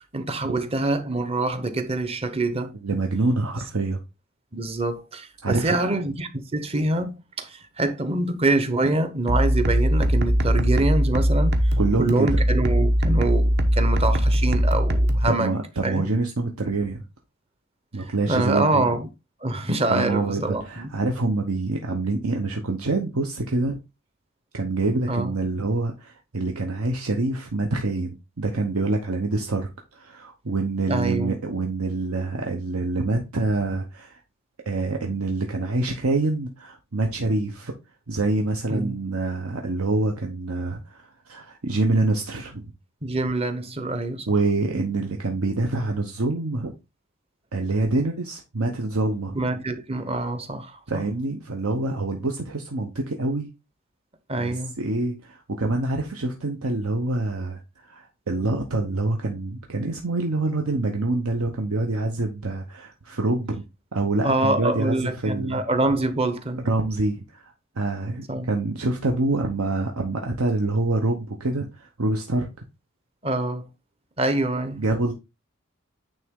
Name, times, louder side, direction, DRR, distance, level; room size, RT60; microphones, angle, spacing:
voice 1, 0.1-2.7 4.5-16.1 18.0-19.1 19.4-20.9 25.1-25.3 30.9-31.3 38.7-39.0 39.4-39.5 43.0-44.3 49.3-51.0 54.3-54.7 64.2-66.7 68.3-68.5 73.2-73.7 74.2-74.8, right 2 dB, 25° right, 0.8 m, -25 dB
voice 2, 2.8-4.0 5.4-5.8 11.8-12.4 15.3-17.0 17.9-18.8 19.9-23.8 24.5-34.2 34.7-37.7 38.1-42.7 44.3-46.7 47.5-49.4 50.9-53.5 54.4-63.6 63.9-65.6 66.6-67.5 67.8-72.5 74.8-75.1, right 2 dB, 80° right, 0.9 m, -26 dB
sound 1, 9.3-15.3, equal, 50° right, 0.9 m, -20 dB
9.1 x 3.5 x 3.6 m
head